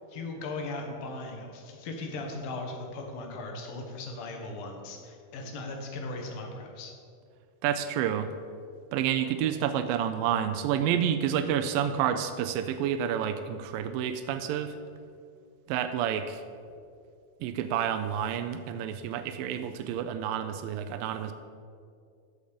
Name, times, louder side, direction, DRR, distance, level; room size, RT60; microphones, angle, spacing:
voice 1, 0.1-6.9, left 2 dB, 75° left, 2 dB, 3.0 m, -38 dB
voice 2, 7.6-8.3 8.9-14.7 15.7-16.4 17.4-21.3, right 9 dB, 80° right, 8 dB, 2.2 m, -29 dB
14.0 x 6.5 x 5.1 m, 2.3 s
omnidirectional pair, 4.2 m